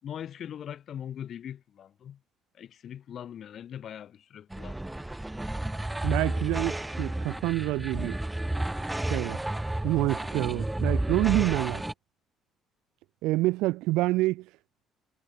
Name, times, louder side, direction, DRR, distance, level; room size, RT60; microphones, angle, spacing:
voice 1, 0.0-2.2 2.5-4.9, left 9 dB, 55° left, 3.6 m, -41 dB
sound 1, 4.5-11.9, right 1 dB, 10° right, 3.1 m, -31 dB
voice 2, 6.0-8.2 9.1-9.4 9.8-11.8 13.2-14.5, right 19 dB, 85° right, 3.8 m, -27 dB
cardioid pair, 90°, 0 cm